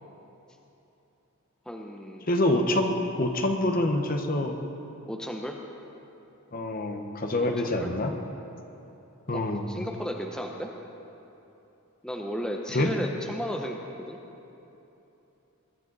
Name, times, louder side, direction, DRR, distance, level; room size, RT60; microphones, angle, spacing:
voice 1, 1.7-2.3 5.1-5.6 7.4-7.9 9.3-9.4 9.7-10.7 12.0-14.2, equal, 5° left, 1 dB, 0.7 m, -34 dB
voice 2, 2.3-4.6 6.5-8.1 9.3-9.6 12.7-12.9, left 1 dB, 40° left, 5 dB, 1.1 m, -26 dB
21.5 x 11.5 x 4.0 m, 3.0 s
head